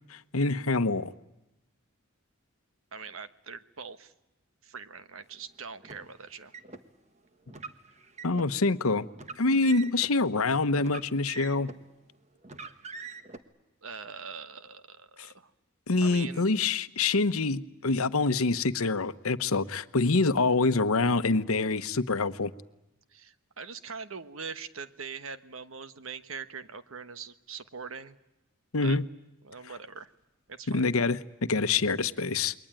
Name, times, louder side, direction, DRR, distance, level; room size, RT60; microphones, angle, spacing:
voice 1, 0.3-1.1 8.2-9.0 9.4-11.7 15.9-22.5 28.7-29.0 30.7-32.5, left 3 dB, 80° left, 12 dB, 1.0 m, -26 dB
voice 2, 2.9-4.1 4.6-6.5 13.8-15.5 16.0-16.4 23.1-28.2 28.8-29.0 29.4-30.1 30.5-30.9, right 5 dB, 70° right, 12 dB, 1.3 m, -42 dB
Car, 5.8-6.8 7.5-8.5 9.1-10.1 10.8-11.9 12.4-13.4, right 4 dB, 30° right, 1.4 m, -43 dB
28.5 x 22.5 x 8.9 m, 0.94 s
head